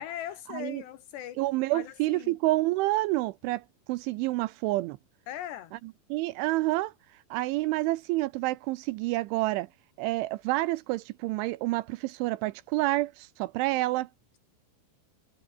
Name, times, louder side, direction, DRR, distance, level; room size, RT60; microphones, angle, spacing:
voice 1, 0.0-1.4 1.7-2.4 5.3-5.7, left 12 dB, 75° left, 2.8 m, -39 dB
voice 2, 1.4-3.6 3.9-5.0 6.1-6.9 7.3-9.7 10.0-14.1, right 19 dB, 80° right, 2.9 m, -28 dB
omnidirectional pair, 5.8 m